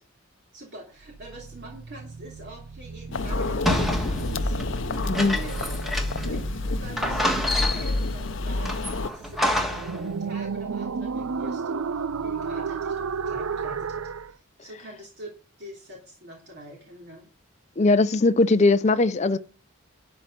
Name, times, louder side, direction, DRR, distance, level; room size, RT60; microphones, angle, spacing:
voice 1, 0.5-5.9 6.2-8.7 9.1-14.0 14.3-15.3 15.6-17.3, equal, 50° right, 2.9 m, -44 dB
sound 1, 1.1-14.3, right 5 dB, 85° right, 0.5 m, -34 dB
sound 2, 3.1-9.1, left 2 dB, 65° left, 0.8 m, -29 dB
sound 3, 3.7-6.4 6.6-6.7 7.0-8.1 8.7-10.0, left 1 dB, ahead, 1.5 m, -27 dB
voice 2, 5.1-5.4 17.8-19.4, left 3 dB, 35° left, 0.5 m, -20 dB
12.0 x 4.6 x 7.5 m
head